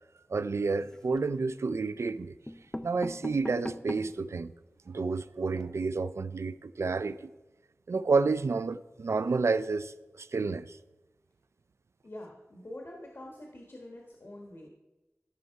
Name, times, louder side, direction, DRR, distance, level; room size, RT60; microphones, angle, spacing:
voice 1, 0.3-2.3 2.8-4.5 4.9-7.3 7.9-10.8, right 4 dB, 80° right, 0.4 m, -30 dB
sound 1, 0.7-1.3 2.1-2.2 2.5-4.3 4.8-4.9 5.0-5.1 5.4-5.6, left 1 dB, 15° left, 0.4 m, -40 dB
voice 2, 12.0-14.7, left 1 dB, 60° left, 1.4 m, -45 dB
13.5 x 5.4 x 4.6 m
wide cardioid pair, 70°, 5 cm